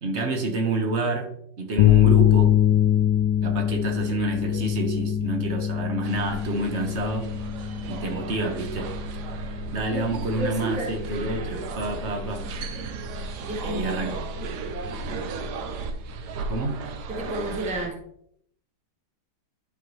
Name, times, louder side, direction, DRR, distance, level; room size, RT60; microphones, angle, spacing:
voice 1, 0.0-1.3 1.6-2.5 3.4-7.3 7.9-8.9 9.7-12.4 13.6-14.3 16.5-16.8, right 3 dB, 45° right, 4 dB, 1.3 m, -28 dB
sound 1, 1.8-17.7, left 11 dB, 75° left, 1.1 m, -25 dB
sound 2, 6.0-17.9, right 3 dB, 75° right, 1.2 m, -35 dB
voice 2, 9.9-11.0 13.4-14.2 17.1-18.0, right 1 dB, 5° right, 2 dB, 0.7 m, -32 dB
11.0 x 4.6 x 3.1 m, 0.69 s
omnidirectional pair, 1.9 m